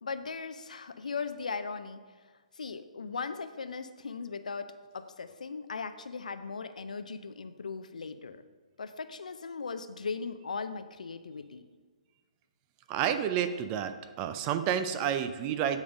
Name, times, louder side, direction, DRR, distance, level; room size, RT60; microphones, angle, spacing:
voice 1, 0.0-2.0 2.6-8.4 8.8-11.6, left 5 dB, 80° left, 10 dB, 0.5 m, -38 dB
voice 2, 12.9-15.8, right 9 dB, 25° right, 9 dB, 0.4 m, -30 dB
8.9 x 3.6 x 5.1 m, 1.5 s
hypercardioid pair, 140°, 4 cm